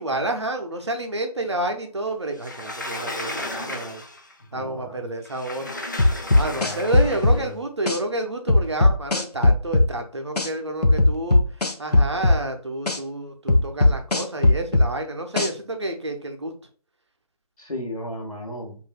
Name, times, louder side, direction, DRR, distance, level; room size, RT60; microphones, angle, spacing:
voice 1, 0.0-4.0 4.5-5.7 6.3-11.4 11.8-16.5, right 2 dB, 45° right, 4 dB, 0.7 m, -29 dB
Sliding door, 2.4-4.3 5.3-7.4, left 1 dB, 30° left, 0.4 m, -34 dB
voice 2, 4.5-5.0 6.4-7.5 17.6-18.8, left 1 dB, 60° left, 0 dB, 1.6 m, -35 dB
sound 1, 6.0-7.4 7.9-8.0 8.5-9.9 10.4-10.5 10.8-12.4 12.9-13.0 13.5-14.9 15.4-15.5, left 2 dB, 80° left, 0.8 m, -17 dB
5.0 x 2.6 x 2.3 m, 0.42 s
figure-of-eight pair, 155°, 20 cm